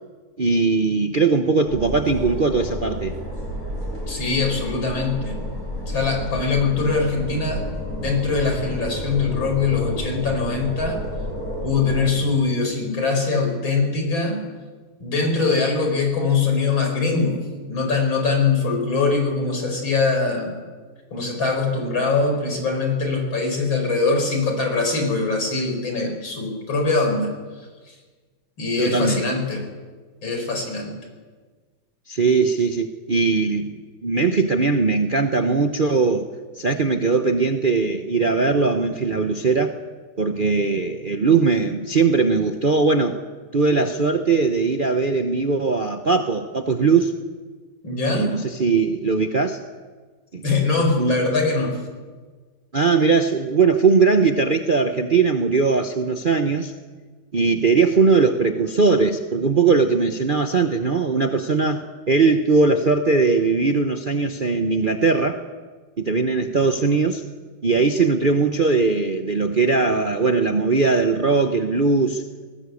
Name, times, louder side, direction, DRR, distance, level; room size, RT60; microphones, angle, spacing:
voice 1, 0.4-3.1 28.8-29.2 32.1-36.3 36.6-39.8 40.2-43.2 43.5-47.1 48.1-49.6 50.3-50.4 51.0-51.2 52.7-56.7 57.3-65.4 66.0-67.2 67.6-72.2, right 4 dB, 40° right, 5 dB, 0.7 m, -20 dB
sound 1, 1.6-12.1, equal, 20° left, 6.8 m, -31 dB
voice 2, 4.1-5.3 5.8-7.6 8.0-11.0 11.6-14.4 15.0-17.4 17.6-20.5 21.1-27.3 28.6-29.6 30.2-31.0 47.8-48.4 50.4-51.7, left 4 dB, 80° left, 3 dB, 5.8 m, -22 dB
19.0 x 19.0 x 8.5 m, 1.4 s
omnidirectional pair, 2.1 m